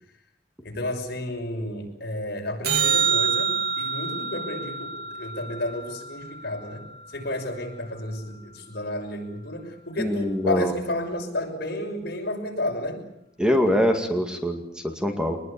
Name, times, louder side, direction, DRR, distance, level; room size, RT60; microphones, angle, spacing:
voice 1, 0.6-6.8 7.1-13.0, left 1 dB, 60° left, 2 dB, 6.5 m, -31 dB
sound 1, 2.6-7.1 13.7-13.8, right 6 dB, 55° right, 3.6 m, -27 dB
voice 2, 10.0-10.7 13.4-15.4, equal, 5° right, 5 dB, 2.3 m, -24 dB
24.5 x 21.0 x 8.7 m, 0.78 s
head